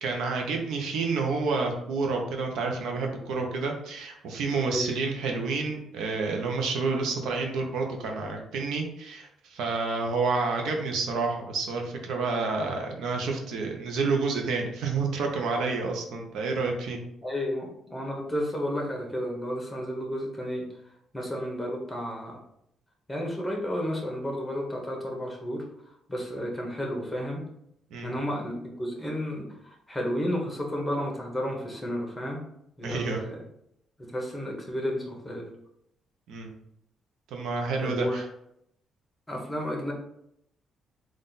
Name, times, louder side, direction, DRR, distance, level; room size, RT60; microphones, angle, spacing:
voice 1, 0.0-17.0 27.9-28.1 32.8-33.2 36.3-36.5 37.3-38.3, right 4 dB, 80° right, 2 dB, 0.7 m, -29 dB
voice 2, 17.2-20.6 21.1-22.4 23.1-25.6 26.1-27.5 28.0-32.4 32.8-33.4 34.1-35.5 37.8-38.2 39.3-39.9, equal, 10° left, 0 dB, 1.2 m, -32 dB
3.7 x 2.5 x 4.0 m, 0.75 s
cardioid pair, 90°, 0 cm